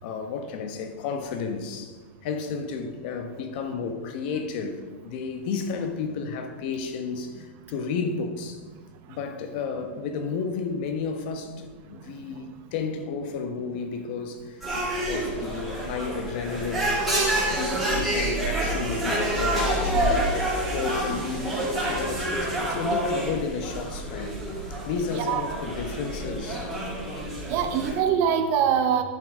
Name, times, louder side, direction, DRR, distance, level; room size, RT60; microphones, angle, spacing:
voice 1, 0.0-2.0 2.2-8.6 9.1-14.7 15.0-17.1 17.4-24.4 24.8-26.7, left 5 dB, 50° left, 1.0 m, -32 dB
sound 1, 14.6-27.9, right 1 dB, ahead, 3.2 m, -28 dB
voice 2, 25.1-25.5 27.5-29.0, right 8 dB, 40° right, 0.8 m, -23 dB
11.0 x 5.9 x 5.0 m
supercardioid pair, 150°, 7 cm